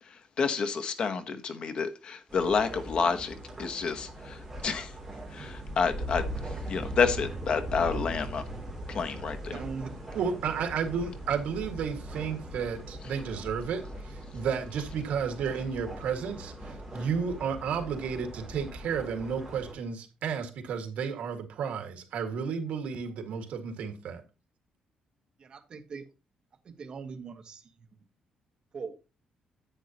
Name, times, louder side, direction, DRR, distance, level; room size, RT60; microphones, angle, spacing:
voice 1, 0.0-4.9 5.3-8.4 8.9-9.6, left 5 dB, 45° left, 1.0 m, -30 dB
sound 1, 2.3-19.7, right 1 dB, 10° right, 3.2 m, -40 dB
voice 2, 9.5-9.9 25.4-26.0 26.6-27.6 28.7-28.9, right 5 dB, 40° right, 1.3 m, -40 dB
voice 3, 10.1-24.2, right 6 dB, 75° right, 1.9 m, -32 dB
10.0 x 9.0 x 2.9 m
cardioid pair, 170°, 2 cm